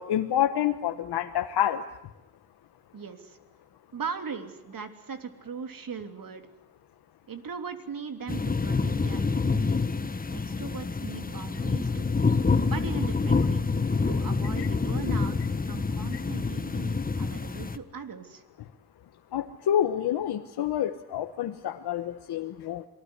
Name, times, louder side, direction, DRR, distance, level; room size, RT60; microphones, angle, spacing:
voice 1, 0.0-1.8 14.6-14.7 19.3-22.8, left 10 dB, 90° left, 6 dB, 1.3 m, -28 dB
voice 2, 2.9-3.4 3.9-6.5 7.3-9.8 10.3-12.1 12.7-13.6 14.0-15.4 15.6-18.4, right 6 dB, 60° right, 7 dB, 3.2 m, -39 dB
sound 1, 8.3-17.8, left 4 dB, 20° left, 1.3 m, -27 dB
27.5 x 19.5 x 9.9 m, 0.94 s
cardioid pair, 85°, 38 cm